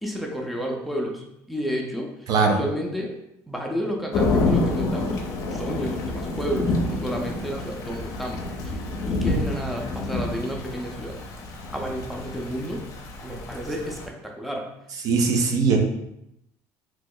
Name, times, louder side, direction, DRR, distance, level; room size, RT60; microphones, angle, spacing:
voice 1, 0.0-3.1 3.5-5.2 5.5-8.8 9.1-11.2 11.7-12.8 13.2-14.7, equal, ahead, 0 dB, 0.5 m, -31 dB
voice 2, 2.3-2.6 15.0-15.8, right 4 dB, 55° right, 2 dB, 0.6 m, -20 dB
Thunder / Rain, 4.1-14.1, left 2 dB, 50° left, 0.6 m, -28 dB
3.0 x 2.0 x 3.7 m, 0.81 s
supercardioid pair, 105°, 7 cm